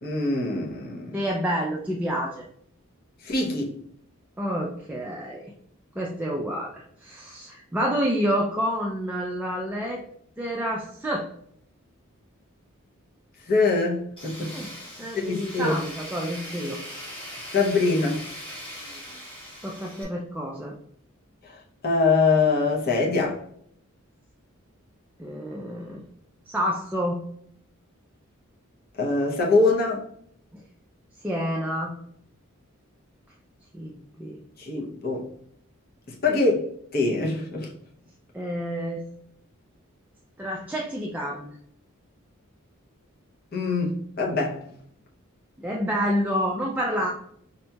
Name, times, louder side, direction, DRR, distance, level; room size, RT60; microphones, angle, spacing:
voice 1, 0.0-1.2 3.2-3.7 13.5-14.5 15.2-15.8 17.5-18.2 21.4-21.6 21.8-23.4 29.0-30.0 34.6-35.3 36.1-37.7 43.5-44.6, left 3 dB, 45° left, -2 dB, 0.7 m, -23 dB
voice 2, 1.1-2.5 4.4-5.5 5.9-10.0 10.4-11.3 14.5-14.7 15.0-16.8 19.6-20.8 25.2-26.0 26.5-27.2 30.5-30.6 31.2-31.9 33.7-34.4 38.3-39.1 40.4-41.6 45.6-47.1, equal, 10° right, -2 dB, 0.3 m, -28 dB
Tools, 14.2-20.0, equal, 25° left, 1.4 m, -40 dB
5.1 x 2.7 x 2.2 m, 0.66 s
head